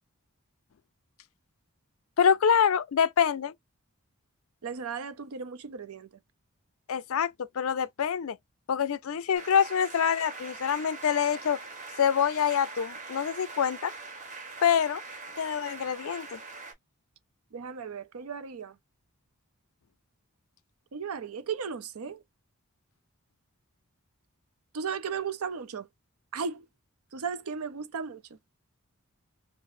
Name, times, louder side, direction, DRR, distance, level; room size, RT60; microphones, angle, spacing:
voice 1, 2.2-3.5 6.9-8.4 8.7-11.6 12.0-13.9 14.6-15.0 15.4-16.4, left 7 dB, 65° left, 0.4 m, -26 dB
voice 2, 4.6-6.1 17.5-18.7 20.9-22.2 24.7-25.9 26.3-26.7 27.1-28.2, right 6 dB, 75° right, 0.5 m, -35 dB
sound 1, 9.3-16.7, right 3 dB, 35° right, 1.1 m, -43 dB
4.8 x 2.0 x 2.6 m
head